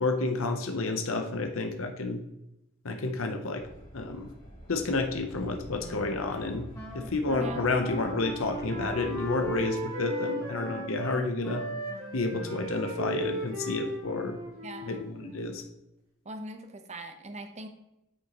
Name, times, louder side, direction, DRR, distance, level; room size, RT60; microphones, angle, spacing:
voice 1, 0.0-2.2 2.8-3.6 3.9-4.3 4.7-6.6 6.9-11.6 12.1-14.4 14.9-15.6, left 3 dB, 70° left, 5 dB, 0.8 m, -30 dB
Train, 3.5-9.7, equal, 40° left, 2.9 m, -47 dB
Wind instrument woodwind instrument, 5.8-13.2, equal, 15° left, 2.1 m, -41 dB
Wind instrument woodwind instrument 2, 7.4-11.2 11.5-15.6, equal, 70° right, 2.8 m, -37 dB
voice 2, 14.6-15.1 16.2-17.7, right 2 dB, 35° right, 6 dB, 0.9 m, -41 dB
8.9 x 6.6 x 3.0 m, 0.87 s
head